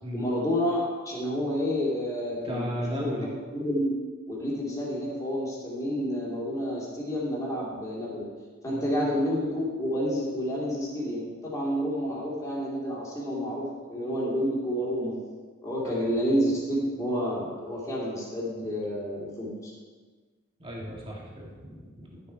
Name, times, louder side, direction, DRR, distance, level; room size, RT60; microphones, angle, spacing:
voice 1, 0.1-2.7 3.0-3.9 4.3-8.3 8.6-15.1 15.6-19.7, equal, 15° left, -6 dB, 2.9 m, -29 dB
voice 2, 2.4-3.3 8.7-8.9 15.8-16.1 20.6-22.2, equal, 25° right, -3 dB, 2.0 m, -35 dB
12.0 x 6.9 x 4.6 m, 1.4 s
head